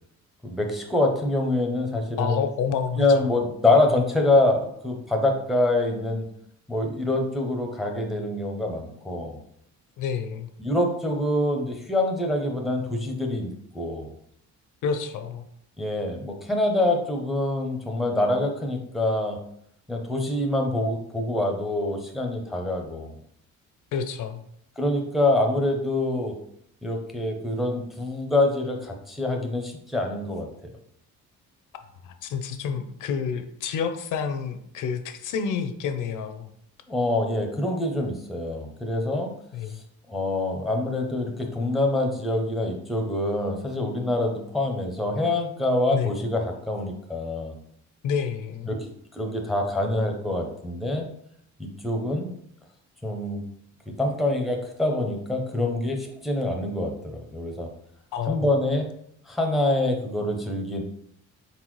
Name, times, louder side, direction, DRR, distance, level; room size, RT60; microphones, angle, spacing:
voice 1, 0.4-2.4 3.0-6.3 6.7-9.4 10.6-14.1 15.8-19.4 19.9-23.1 24.8-26.4 26.8-30.7 36.9-39.4 40.1-47.5 48.7-51.1 51.6-52.4 53.0-53.5 53.9-57.7 58.3-58.9 59.3-60.8, left 2 dB, ahead, 3 dB, 0.5 m, -25 dB
voice 2, 2.2-3.2 10.0-10.5 14.8-15.4 23.9-24.4 32.0-36.5 39.5-39.8 45.9-46.1 48.0-48.7 58.1-58.4, left 7 dB, 80° left, 8 dB, 0.6 m, -29 dB
4.0 x 4.0 x 3.0 m, 0.70 s
cardioid pair, 165°, 31 cm